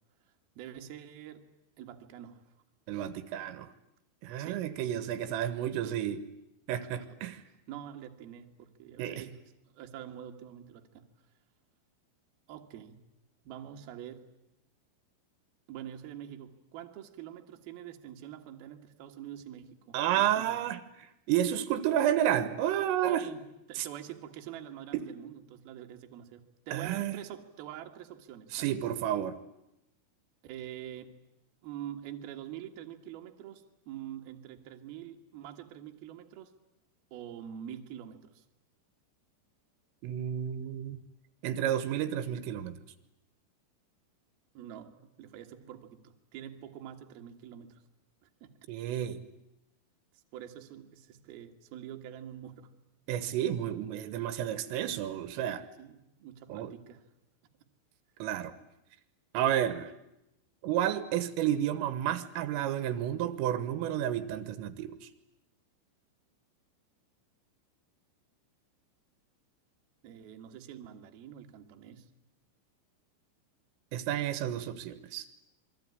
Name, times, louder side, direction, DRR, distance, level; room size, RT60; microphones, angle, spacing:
voice 1, 0.6-1.5 1.8-2.5 2.9-3.1 4.4-4.7 6.8-7.2 7.7-9.4 9.7-11.0 12.5-13.1 13.4-14.3 15.7-20.6 23.1-28.8 30.4-31.2 31.6-36.5 37.1-38.4 44.5-47.8 48.2-48.6 50.1-52.7 55.8-57.1 70.0-72.1, right 10 dB, 60° right, 4 dB, 3.0 m, -45 dB
voice 2, 2.9-3.7 4.2-6.2 6.7-7.4 9.0-9.2 19.9-20.8 21.3-23.2 23.8-23.9 24.9-25.0 26.7-27.1 28.5-29.4 40.0-41.0 41.4-42.8 48.7-49.2 53.1-55.6 56.5-56.7 58.2-58.5 59.3-59.9 60.6-65.1 73.9-75.3, right 11 dB, 80° right, 13 dB, 3.7 m, -31 dB
27.5 x 22.0 x 9.7 m, 0.88 s
omnidirectional pair, 5.9 m